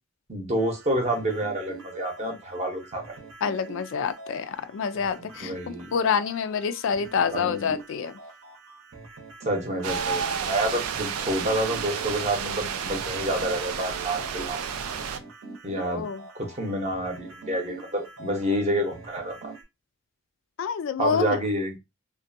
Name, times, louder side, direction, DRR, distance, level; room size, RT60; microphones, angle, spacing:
voice 1, 0.3-3.0 5.4-5.9 7.3-7.7 9.4-14.6 15.6-16.0 16.3-19.5 21.0-21.8, right 1 dB, 30° right, 0.7 m, -28 dB
sound 1, 0.6-19.6, right 4 dB, 65° right, 0.8 m, -45 dB
voice 2, 3.4-8.1 15.8-16.2 20.6-21.4, left 6 dB, 60° left, 0.3 m, -27 dB
sound 2, 9.8-15.2, right 7 dB, 85° right, 0.4 m, -31 dB
2.5 x 2.1 x 2.6 m
head